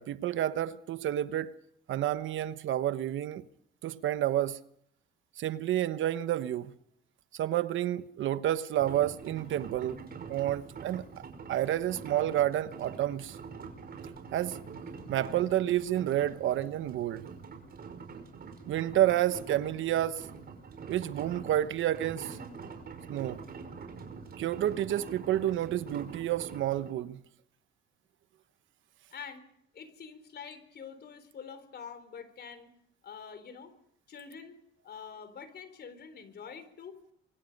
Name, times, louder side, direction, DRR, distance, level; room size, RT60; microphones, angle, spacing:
voice 1, 0.0-1.5 1.9-3.4 3.8-4.6 5.4-6.7 7.3-10.0 10.3-11.2 11.5-13.4 14.3-14.6 15.1-17.3 18.6-20.2 20.9-22.4 23.1-23.4 24.4-27.2, right 12 dB, 75° right, 1.0 m, -30 dB
sound 1, 8.8-26.9, right 5 dB, 50° right, 5.4 m, -45 dB
voice 2, 29.1-29.4 29.7-32.7 33.0-33.7 34.1-34.6 34.8-37.0, left 6 dB, 55° left, 3.9 m, -46 dB
27.5 x 23.5 x 5.4 m
cardioid pair, 90°, 20 cm